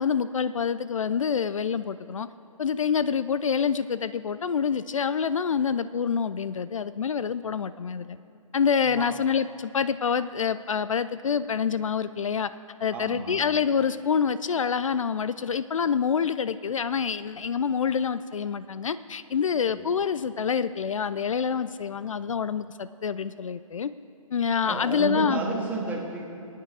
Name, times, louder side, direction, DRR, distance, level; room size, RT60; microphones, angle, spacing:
voice 1, 0.0-2.3 2.6-8.2 8.5-12.5 12.8-23.9 24.3-25.4, left 6 dB, 65° left, 14 dB, 0.4 m, -26 dB
voice 2, 12.9-13.4 19.6-19.9 24.6-26.2, right 3 dB, 10° right, -2 dB, 1.6 m, -32 dB
22.5 x 9.4 x 3.7 m, 2.9 s
figure-of-eight pair, 135°, 18 cm